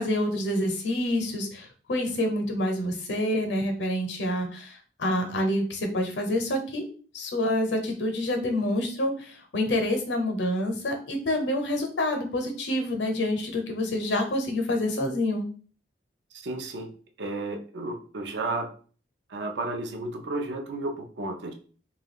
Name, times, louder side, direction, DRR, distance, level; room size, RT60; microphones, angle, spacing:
voice 1, 0.0-6.8 7.1-15.5, left 1 dB, 75° left, 4 dB, 0.7 m, -27 dB
voice 2, 16.4-16.9 17.2-18.7 19.3-21.5, right 2 dB, 75° right, 4 dB, 0.5 m, -32 dB
2.3 x 2.2 x 3.5 m, 0.41 s
head